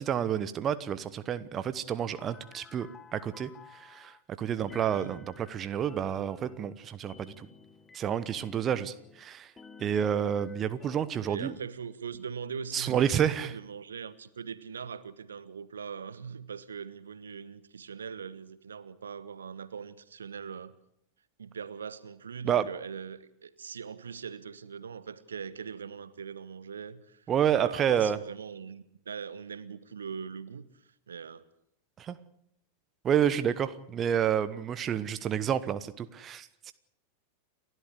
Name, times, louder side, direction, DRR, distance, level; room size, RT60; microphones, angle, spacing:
voice 1, 0.0-7.5 7.9-9.5 9.8-11.5 12.7-13.5 22.4-22.7 27.3-28.2 32.0-32.2 33.0-36.7, right 9 dB, 25° right, 13 dB, 1.1 m, -29 dB
sound 1, 2.1-4.2 4.7-9.3 9.6-11.1, left 5 dB, 15° left, 1.6 m, -53 dB
voice 2, 11.2-20.7 21.4-31.4, right 6 dB, 70° right, 15 dB, 1.2 m, -41 dB
30.0 x 12.5 x 8.2 m, 0.74 s
figure-of-eight pair, 90°, 0 cm